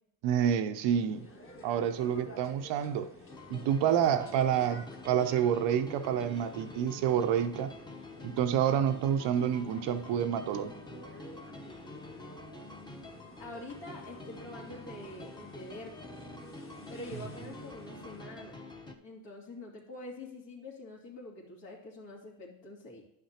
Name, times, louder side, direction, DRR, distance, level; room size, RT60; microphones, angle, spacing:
voice 1, 0.2-1.3 1.6-3.1 3.5-7.7 8.2-10.7, right 9 dB, 60° right, 0.7 m, -28 dB
sound 1, 0.9-18.2, left 2 dB, 25° left, 1.5 m, -53 dB
sound 2, 3.3-19.0, left 2 dB, 10° left, 0.9 m, -47 dB
voice 2, 13.4-16.3 16.9-18.6 19.0-23.0, left 2 dB, 60° left, 2.6 m, -46 dB
11.0 x 5.8 x 2.9 m
supercardioid pair, 75°, 48 cm